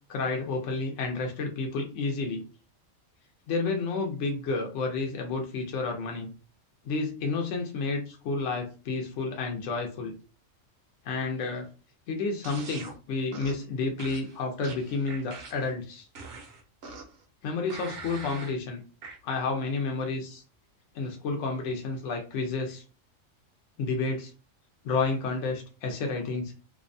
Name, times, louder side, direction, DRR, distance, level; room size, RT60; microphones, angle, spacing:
voice 1, 0.1-2.4 3.5-6.3 6.8-10.1 11.0-11.7 12.1-16.1 17.4-18.8 19.2-20.4 20.9-22.8 23.8-24.3 24.8-26.5, left 3 dB, 70° left, 3 dB, 0.9 m, -30 dB
sound 1, 12.4-12.9 13.3-13.6 14.0-15.7 16.1-17.2 17.7-18.6 19.0-19.2, right 3 dB, 60° right, 0.8 m, -43 dB
2.7 x 2.1 x 2.5 m, 0.34 s
omnidirectional pair, 1.3 m